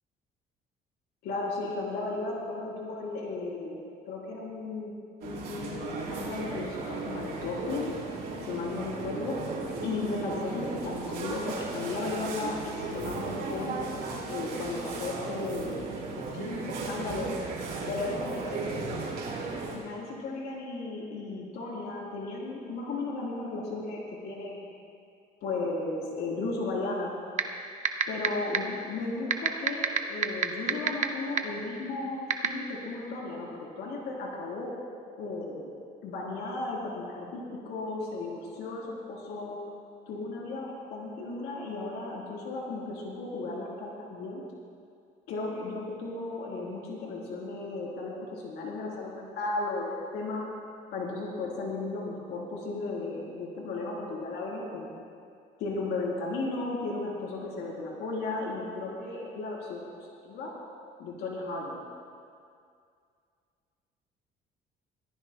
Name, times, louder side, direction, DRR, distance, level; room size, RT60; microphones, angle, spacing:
voice 1, 1.2-3.8 4.1-4.9 5.2-8.0 8.5-9.4 9.8-13.8 14.3-17.3 17.9-19.2 19.7-24.7 25.4-27.1 28.1-34.7 35.2-35.7 36.0-39.6 40.1-44.4 45.3-50.4 50.9-54.9 55.6-60.5 61.0-61.8, left 3 dB, 80° left, -3 dB, 3.8 m, -35 dB
sound 1, 5.2-19.8, right 3 dB, 70° right, 3.9 m, -36 dB
sound 2, 27.4-27.5 27.9-28.3 28.5-28.6 29.3-31.0 31.4-31.5 32.3-32.5, right 8 dB, 45° right, 0.9 m, -22 dB
23.0 x 14.5 x 2.3 m, 2.3 s
cardioid pair, 110°, 17 cm